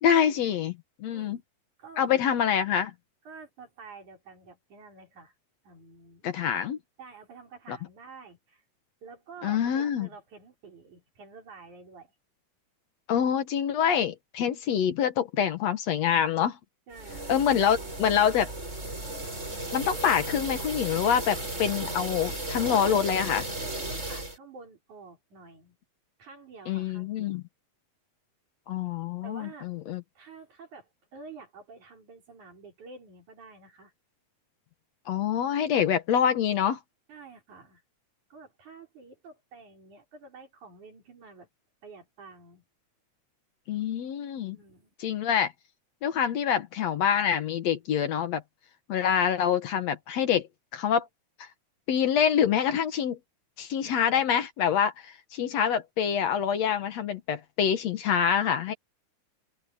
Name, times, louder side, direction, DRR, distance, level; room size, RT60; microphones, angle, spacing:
voice 1, 0.0-1.4 2.0-2.9 6.2-6.8 7.7-7.8 9.4-10.1 13.1-16.6 17.3-18.5 19.7-23.5 26.7-27.4 28.7-30.0 35.1-36.8 43.7-44.6 45.0-45.5 46.0-48.4 48.9-51.1 51.4-51.5 51.9-53.2 53.6-58.7, left 8 dB, 65° left, 2.3 m, -26 dB
voice 2, 1.1-1.4 1.8-2.3 3.2-5.3 5.6-6.2 7.0-8.6 9.0-12.1 16.9-17.5 23.6-25.8 26.2-27.4 29.2-29.7 30.1-33.9 37.1-37.8 38.3-41.5 41.8-42.7 44.5-44.9, right 4 dB, 75° right, 6.5 m, -49 dB
sound 1, 16.9-24.4, right 2 dB, 20° right, 6.0 m, -35 dB
omnidirectional pair, 3.5 m